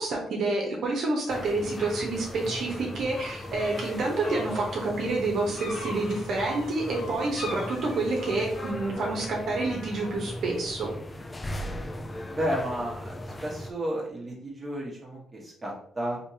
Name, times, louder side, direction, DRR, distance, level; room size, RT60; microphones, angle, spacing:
voice 1, 0.0-10.9, right 2 dB, 65° right, -1 dB, 0.9 m, -28 dB
sound 1, 1.3-13.7, left 1 dB, 20° left, 0.3 m, -38 dB
sound 2, 3.2-8.7, left 2 dB, 65° left, 1.1 m, -42 dB
voice 2, 12.3-16.2, equal, 20° right, -3 dB, 1.1 m, -32 dB
3.3 x 3.0 x 2.8 m, 0.62 s
cardioid pair, 90°, 0 cm